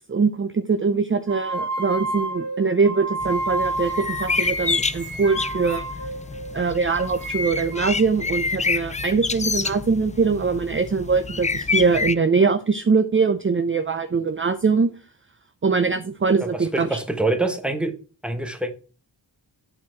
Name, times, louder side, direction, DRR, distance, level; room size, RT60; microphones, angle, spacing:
voice 1, 0.0-5.9 6.5-14.9 15.6-17.0, right 4 dB, 30° right, 0.6 m, -22 dB
sound 1, 1.3-6.6 6.9-7.9, right 1 dB, 80° right, 2.7 m, -30 dB
sound 2, 3.2-12.1, left 4 dB, 20° left, 0.4 m, -28 dB
voice 2, 16.4-17.9 18.2-18.7, right 2 dB, ahead, 1.3 m, -25 dB
8.7 x 4.4 x 4.6 m
cardioid pair, 70°, 43 cm